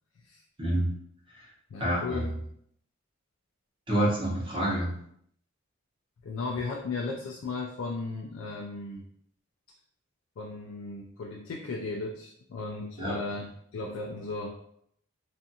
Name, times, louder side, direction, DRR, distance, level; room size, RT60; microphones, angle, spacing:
voice 1, 0.6-0.9 1.3-1.5 1.8-2.3 3.9-4.9 13.0-13.2, right 1 dB, 25° right, -6 dB, 0.9 m, -28 dB
voice 2, 1.7-2.3 6.2-9.1 10.4-14.6, left 3 dB, 70° left, 0 dB, 0.3 m, -36 dB
2.5 x 2.4 x 2.6 m, 0.70 s
head